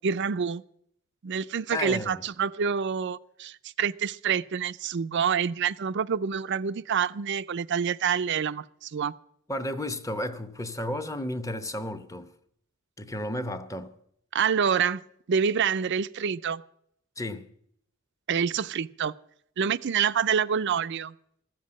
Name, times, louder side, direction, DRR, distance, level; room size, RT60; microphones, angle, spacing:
voice 1, 0.0-0.6 1.2-9.1 14.3-15.0 15.3-16.6 18.3-19.1 19.6-21.1, right 7 dB, 60° right, 0.5 m, -27 dB
voice 2, 1.7-2.2 9.5-12.3 13.0-14.0 17.2-17.5, left 1 dB, 15° left, 0.9 m, -33 dB
14.5 x 7.5 x 9.8 m
head